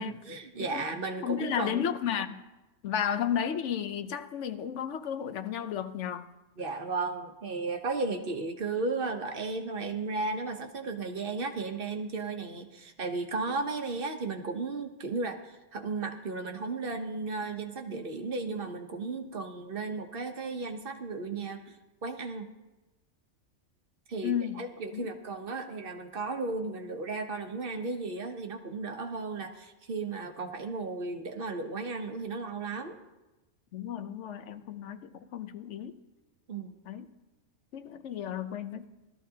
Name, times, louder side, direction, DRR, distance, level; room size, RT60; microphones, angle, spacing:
voice 1, 0.0-1.8 6.6-22.5 24.1-33.0 36.5-36.8, right 3 dB, 50° right, 5 dB, 1.0 m, -35 dB
voice 2, 1.2-2.4 2.8-6.3 24.2-24.6 24.9-25.1 33.7-36.0 36.9-37.1 37.7-38.8, left 9 dB, 75° left, 9 dB, 1.0 m, -33 dB
17.0 x 13.0 x 2.8 m, 1.0 s
omnidirectional pair, 1.3 m